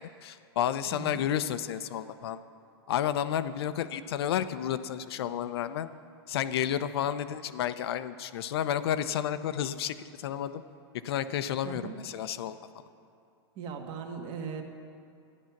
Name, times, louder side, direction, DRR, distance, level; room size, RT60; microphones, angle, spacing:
voice 1, 0.0-2.4 2.9-5.9 6.3-10.6 11.0-12.6, left 10 dB, 65° left, 13 dB, 0.6 m, -31 dB
voice 2, 0.9-1.2 11.6-12.0 13.5-14.6, right 6 dB, 40° right, 3 dB, 1.5 m, -38 dB
13.0 x 10.5 x 5.9 m, 2.5 s
hypercardioid pair, 120°, 14 cm